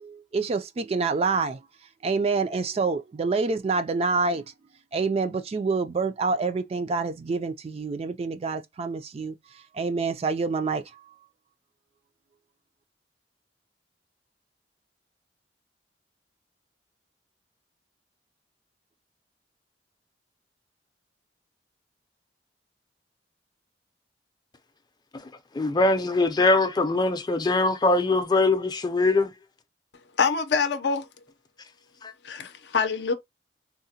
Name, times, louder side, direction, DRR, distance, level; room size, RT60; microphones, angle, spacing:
voice 1, 0.0-1.6 2.0-4.4 4.9-9.3 9.7-10.8, right 4 dB, 35° right, 0.3 m, -27 dB
voice 2, 25.5-29.3 32.0-32.1, left 2 dB, 25° left, 0.5 m, -22 dB
voice 3, 30.2-31.1 32.2-33.1, left 5 dB, 70° left, 0.5 m, -25 dB
3.7 x 2.1 x 2.7 m
head